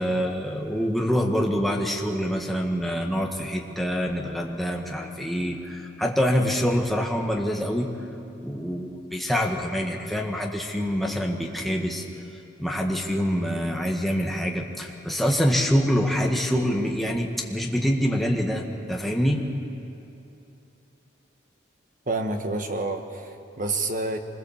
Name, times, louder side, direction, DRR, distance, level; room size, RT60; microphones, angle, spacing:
voice 1, 0.0-7.9 8.4-12.0 12.3-19.4, equal, ahead, 0 dB, 1.6 m, -25 dB
voice 2, 22.1-24.2, right 2 dB, 45° right, 5 dB, 1.6 m, -28 dB
24.5 x 21.0 x 7.3 m, 2.9 s
head